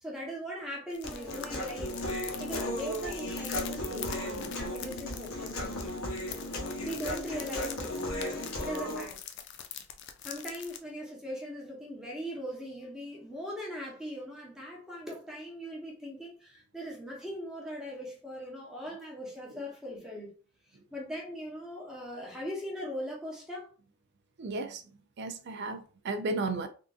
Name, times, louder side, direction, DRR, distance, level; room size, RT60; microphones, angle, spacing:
voice 1, 0.0-2.1 2.4-5.9 6.8-9.2 10.2-20.3 20.9-23.7, equal, 5° right, 0.9 m, -40 dB
sound 1, 0.9-10.8, left 9 dB, 50° left, 0.4 m, -44 dB
Human voice, 1.0-9.0, left 1 dB, 70° left, 1.0 m, -35 dB
voice 2, 24.4-24.8 25.2-26.7, right 3 dB, 50° right, 0.4 m, -34 dB
3.6 x 2.5 x 2.4 m
head